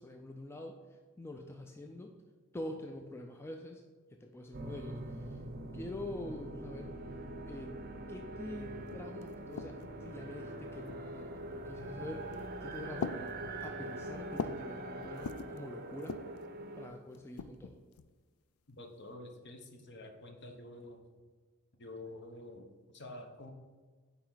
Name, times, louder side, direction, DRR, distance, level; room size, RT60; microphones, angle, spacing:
voice 1, 0.0-2.1 2.5-3.8 4.1-5.4 5.7-6.9 7.5-7.8 8.1-13.2 13.6-16.2 16.8-17.8, left 1 dB, 10° left, 3 dB, 0.4 m, -45 dB
sound 1, 4.5-16.9, right 1 dB, 45° right, 0.6 m, -43 dB
sound 2, 8.6-8.7 8.9-10.1 10.9-11.4 12.2-12.5 13.0-14.7 15.0-15.6 16.0-16.4 17.1-18.1, left 4 dB, 80° left, 0.4 m, -42 dB
voice 2, 18.7-21.0 21.8-23.5, left 2 dB, 55° left, 4 dB, 0.9 m, -48 dB
9.2 x 4.2 x 3.9 m, 1.4 s
head